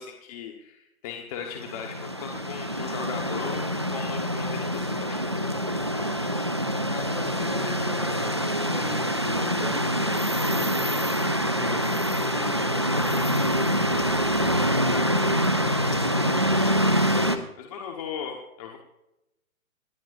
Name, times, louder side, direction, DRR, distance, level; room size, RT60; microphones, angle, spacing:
voice 1, 0.0-6.5 15.7-16.9 17.6-18.8, left 7 dB, 25° left, 2 dB, 1.3 m, -38 dB
sound 1, 1.6-17.4, equal, 20° right, 0.4 m, -25 dB
voice 2, 6.9-10.0 10.3-14.4, left 3 dB, 60° left, 1 dB, 6.5 m, -40 dB
28.0 x 11.0 x 2.6 m, 0.88 s
hypercardioid pair, 145°, 42 cm